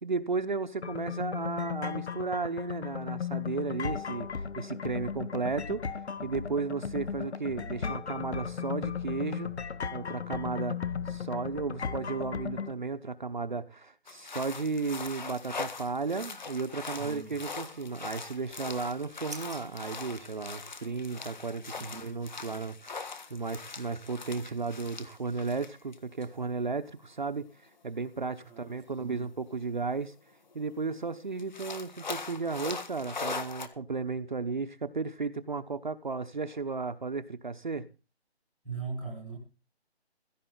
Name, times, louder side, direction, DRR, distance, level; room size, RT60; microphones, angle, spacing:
voice 1, 0.0-4.3 4.6-9.5 9.9-10.8 11.1-30.1 30.5-37.9, right 4 dB, 45° right, 0.9 m, -34 dB
sound 1, 0.8-12.7, left 7 dB, 75° left, 1.1 m, -36 dB
sound 2, 14.1-26.0 26.2-26.3 27.4-27.5 29.7-29.8 30.1-30.2 30.5-30.6 31.4-33.7, left 4 dB, 40° left, 1.6 m, -41 dB
voice 2, 16.8-17.3 21.7-22.1 28.4-29.3 38.6-39.4, right 5 dB, ahead, 1.3 m, -41 dB
sound 3, 18.2-21.0, right 3 dB, 15° right, 0.9 m, -52 dB
16.0 x 14.5 x 3.9 m
hypercardioid pair, 180°, 33 cm